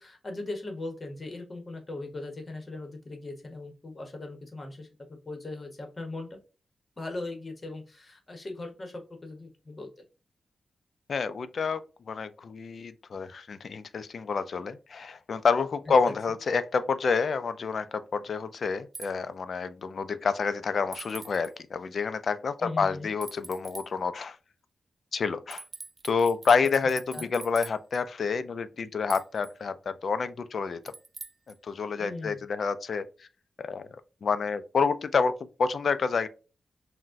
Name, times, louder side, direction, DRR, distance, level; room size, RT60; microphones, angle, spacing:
voice 1, 0.0-4.9 5.3-6.4 7.0-9.9 15.9-16.0 22.6-23.1 26.8-27.3 32.0-32.4, left 2 dB, 30° left, 0.9 m, -39 dB
voice 2, 11.1-11.8 12.1-24.4 25.1-25.6 26.0-30.8 31.6-33.0 33.6-33.9 34.2-35.3 35.6-36.3, left 5 dB, 55° left, 0.3 m, -28 dB
sound 1, 18.9-19.1 20.9-21.5 23.2-23.9 25.5-28.0 29.1-29.5 30.9-31.5, right 3 dB, 30° right, 0.3 m, -43 dB
5.9 x 2.1 x 2.5 m
wide cardioid pair, 130°, 0 cm